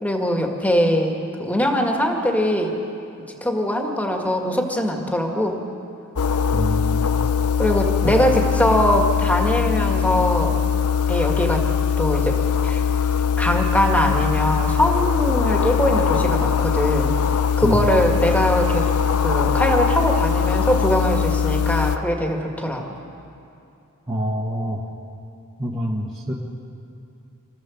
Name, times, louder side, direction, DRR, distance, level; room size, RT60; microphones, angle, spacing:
voice 1, 0.0-2.8 3.4-5.6 7.6-10.6 11.1-11.7 12.0-12.4 12.6-12.8 13.4-17.2 17.6-18.9 19.2-23.0, equal, 5° left, 2 dB, 1.9 m, -21 dB
sound 1, 6.2-22.0, left 7 dB, 80° left, 0.7 m, -21 dB
voice 2, 6.5-7.2 8.0-8.1 17.6-17.8 24.1-24.8 25.6-26.3, equal, 20° right, -4 dB, 1.5 m, -25 dB
27.0 x 14.5 x 7.2 m, 2.7 s
head